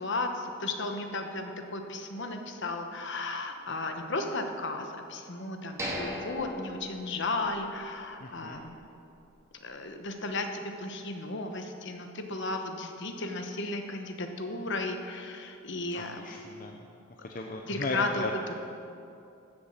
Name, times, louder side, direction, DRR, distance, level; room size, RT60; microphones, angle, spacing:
voice 1, 0.0-8.8 9.6-16.2 17.2-17.3 17.7-18.5, left 2 dB, 55° left, 5 dB, 1.1 m, -34 dB
sound 1, 5.8-7.7 8.0-8.1 8.7-8.8, equal, 15° right, 1.8 m, -38 dB
voice 2, 8.2-8.6 15.9-16.8 17.2-18.3, left 2 dB, 40° left, 2 dB, 0.7 m, -36 dB
14.5 x 7.2 x 6.6 m, 2.6 s
head